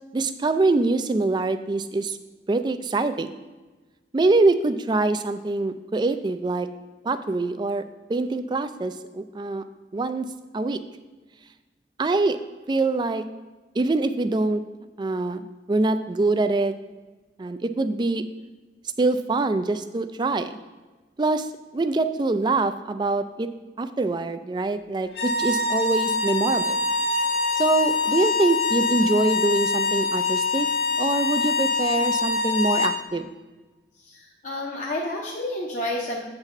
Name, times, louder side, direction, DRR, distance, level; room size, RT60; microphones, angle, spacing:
voice 1, 0.1-2.2 2.5-3.3 4.1-6.7 7.0-7.8 8.1-9.6 9.9-10.3 10.5-10.8 12.0-12.4 12.7-13.2 13.8-14.6 15.0-16.7 17.4-18.3 19.0-20.6 21.2-21.5 21.7-23.5 23.8-26.8 27.5-30.7 31.0-33.3, right 3 dB, 25° right, 10 dB, 0.3 m, -24 dB
sound 1, 25.1-33.0, left 3 dB, 60° left, 1.5 m, -24 dB
voice 2, 34.0-36.2, left 1 dB, 40° left, -2 dB, 0.8 m, -30 dB
8.0 x 4.0 x 5.3 m, 1.3 s
head